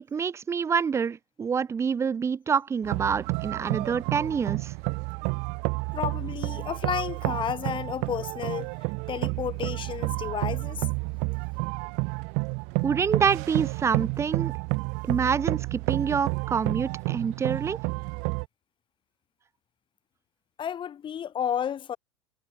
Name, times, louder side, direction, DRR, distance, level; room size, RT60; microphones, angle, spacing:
voice 1, 0.0-4.7 12.8-14.5 15.0-17.8, right 6 dB, 15° right, 0.7 m, -27 dB
sound 1, 2.8-18.5, right 33 dB, 45° right, 1.3 m, -30 dB
voice 2, 5.9-10.9 20.6-22.0, left 9 dB, 30° left, 5.9 m, -32 dB
figure-of-eight pair, 80°, 17 cm